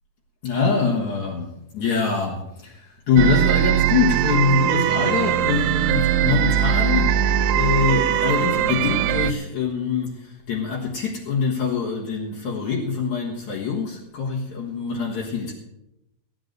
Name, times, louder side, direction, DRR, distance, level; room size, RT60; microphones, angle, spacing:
voice 1, 0.4-7.2 7.5-15.5, left 5 dB, 60° left, -3 dB, 2.7 m, -24 dB
sound 1, 3.2-9.3, right 10 dB, 90° right, 2.4 m, -20 dB
14.5 x 9.3 x 6.6 m, 0.87 s
omnidirectional pair, 3.9 m